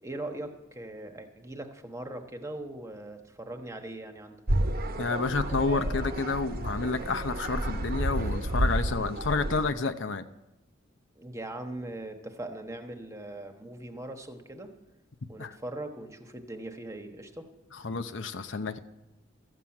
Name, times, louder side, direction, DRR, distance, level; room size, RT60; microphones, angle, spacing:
voice 1, 0.0-4.4 11.2-14.7 15.3-17.5, right 1 dB, 15° right, 5 dB, 1.2 m, -40 dB
sound 1, 4.5-9.7, right 1 dB, 50° right, 0.9 m, -30 dB
voice 2, 5.0-10.3 15.4-15.6 17.8-18.8, left 4 dB, 75° left, 9 dB, 0.8 m, -30 dB
13.5 x 7.6 x 8.7 m, 0.95 s
head